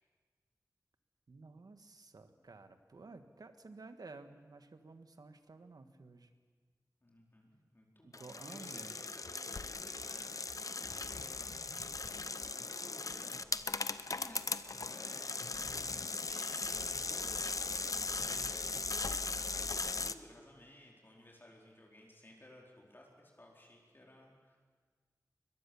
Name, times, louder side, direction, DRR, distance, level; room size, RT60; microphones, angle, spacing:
voice 1, 1.3-6.3 8.0-9.0, right 3 dB, 80° right, 8 dB, 1.5 m, -53 dB
voice 2, 7.0-10.3 10.8-24.6, left 1 dB, 35° left, -2 dB, 4.3 m, -58 dB
sound 1, 8.1-20.1, left 3 dB, 60° left, 0.8 m, -38 dB
22.5 x 21.5 x 7.1 m, 1.5 s
wide cardioid pair, 75°, 7 cm